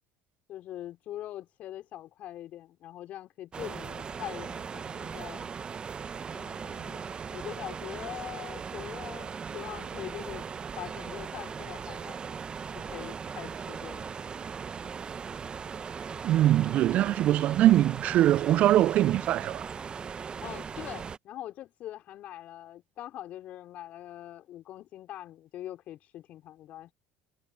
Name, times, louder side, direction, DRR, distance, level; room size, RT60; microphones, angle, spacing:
voice 1, 0.5-5.5 6.3-7.0 7.3-10.5 10.7-12.2 12.7-14.2 20.4-26.9, left 13 dB, 55° left, 4.7 m, -43 dB
sound 1, 3.5-21.2, right 6 dB, 35° right, 1.1 m, -39 dB
voice 2, 16.2-19.6, right 13 dB, 55° right, 0.3 m, -22 dB
hypercardioid pair, 75°, 3 cm